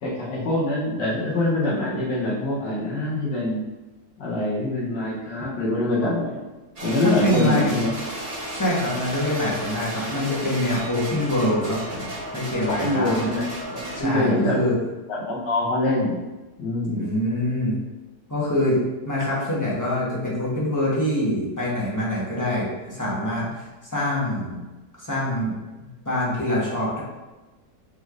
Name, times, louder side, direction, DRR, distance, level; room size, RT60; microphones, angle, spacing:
voice 1, 0.0-3.6 4.2-6.4 6.8-7.9 12.7-14.6 15.1-16.2 16.6-17.1, left 1 dB, 80° left, -6 dB, 1.5 m, -24 dB
sound 1, 6.8-14.0, right 1 dB, 30° right, 0.8 m, -33 dB
voice 2, 7.0-7.7 8.5-13.3 13.9-14.8 16.9-17.8 18.3-18.8 19.0-23.5 23.9-24.6 24.9-25.5 25.8-27.0, left 1 dB, 15° left, -7 dB, 0.8 m, -25 dB
5.1 x 3.3 x 2.4 m, 1.1 s
omnidirectional pair, 1.9 m